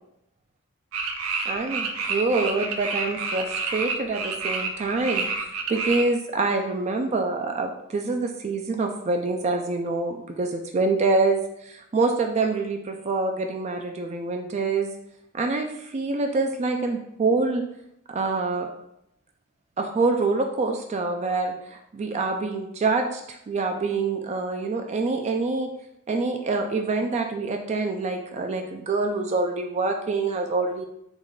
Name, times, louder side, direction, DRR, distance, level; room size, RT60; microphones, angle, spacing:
sound 1, 0.9-6.0, right 4 dB, 85° right, 0.5 m, -29 dB
voice 1, 1.5-5.3 5.7-14.9 15.3-17.6 18.1-18.7 19.8-25.7 26.1-30.9, right 3 dB, 35° right, 4 dB, 0.3 m, -26 dB
3.6 x 3.1 x 3.8 m, 0.79 s
head